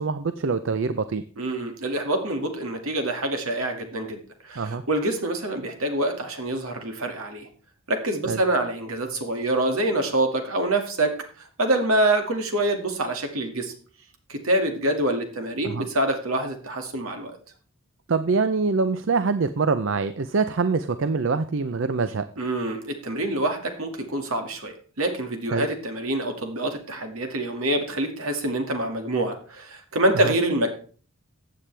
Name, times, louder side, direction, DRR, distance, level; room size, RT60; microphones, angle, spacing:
voice 1, 0.0-1.2 4.6-4.8 8.3-8.4 15.6-15.9 18.1-22.3 25.5-25.7 30.2-30.3, right 4 dB, 60° right, 12 dB, 0.5 m, -24 dB
voice 2, 1.4-7.5 7.9-11.1 11.4-13.7 14.3-17.4 22.4-30.7, right 1 dB, 75° right, 5 dB, 2.1 m, -26 dB
15.0 x 8.6 x 3.3 m, 0.41 s
head